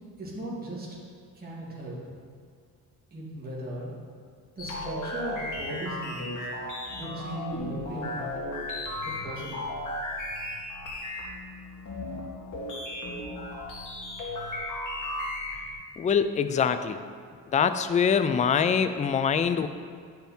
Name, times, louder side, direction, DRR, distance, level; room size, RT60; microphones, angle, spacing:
voice 1, 0.2-0.9 1.3-2.0 3.1-3.9 4.6-6.5 6.9-8.3 9.0-9.6, right 1 dB, 25° right, -6 dB, 2.5 m, -37 dB
sound 1, 4.6-15.7, left 1 dB, 50° left, 2.4 m, -35 dB
voice 2, 16.0-17.0 17.5-19.7, left 7 dB, 20° left, 10 dB, 0.3 m, -24 dB
10.5 x 5.8 x 4.4 m, 2.1 s
cardioid pair, 120°, 38 cm